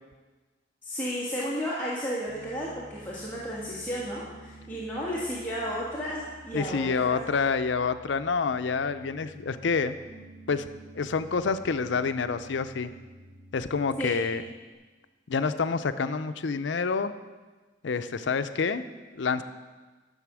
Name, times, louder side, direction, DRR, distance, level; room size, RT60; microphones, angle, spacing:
voice 1, 0.8-7.2 14.0-14.2, equal, 10° left, -8 dB, 1.7 m, -33 dB
Piano, 2.3-14.7, right 1 dB, 20° right, 3.9 m, -50 dB
voice 2, 6.5-10.0 10.5-10.6 10.9-12.9 13.5-14.4 15.3-17.1 17.8-18.8 19.1-19.4, left 5 dB, 75° left, 11 dB, 0.5 m, -27 dB
11.5 x 6.9 x 6.1 m, 1.3 s
head